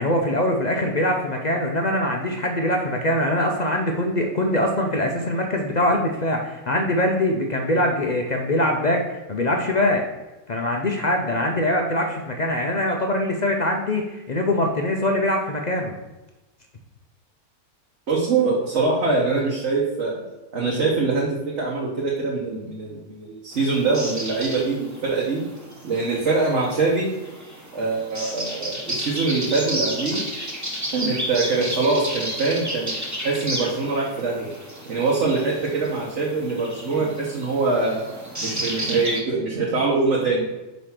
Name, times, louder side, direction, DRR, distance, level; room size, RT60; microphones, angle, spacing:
voice 1, 0.0-10.0 10.5-16.0, left 1 dB, 50° left, 2 dB, 0.5 m, -23 dB
voice 2, 18.1-20.2 20.5-25.4 25.8-27.1 27.7-30.2 30.9-32.9 33.2-34.5 34.9-38.0 38.4-40.5, right 3 dB, 55° right, -4 dB, 1.3 m, -23 dB
sound 1, 23.5-39.2, equal, 15° right, 1.0 m, -32 dB
4.9 x 4.0 x 5.8 m, 1.1 s
omnidirectional pair, 1.5 m